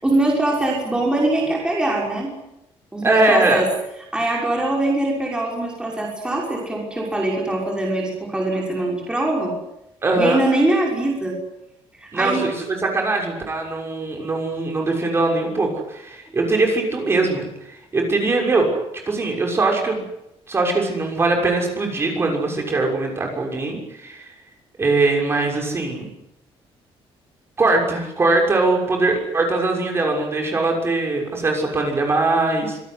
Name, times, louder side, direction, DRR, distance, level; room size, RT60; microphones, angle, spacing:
voice 1, 0.0-2.3 2.9-3.7 4.1-9.5 10.2-11.4 11.9-12.5, right 2 dB, 10° right, -2 dB, 6.0 m, -22 dB
voice 2, 3.0-3.6 10.0-10.5 12.1-18.7 19.1-20.0 20.5-24.3 24.8-26.1 27.6-32.8, right 2 dB, 25° right, 1 dB, 6.5 m, -21 dB
26.0 x 18.5 x 9.9 m, 0.85 s
cardioid pair, 160°, 10 cm